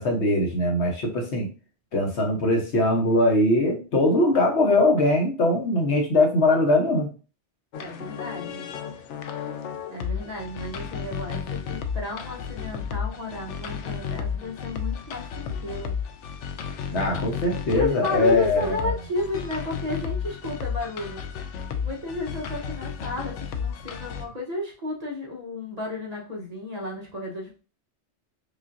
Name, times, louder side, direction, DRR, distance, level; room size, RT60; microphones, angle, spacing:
voice 1, 0.0-1.5 1.9-7.1 16.9-18.9, left 1 dB, 70° left, 2 dB, 1.1 m, -21 dB
sound 1, 7.7-24.3, left 7 dB, 90° left, 0.9 m, -33 dB
voice 2, 7.8-8.7 9.9-15.9 17.7-21.3 21.8-27.6, left 2 dB, 40° right, -2 dB, 0.9 m, -32 dB
5.1 x 2.5 x 2.5 m, 0.35 s
omnidirectional pair, 1.2 m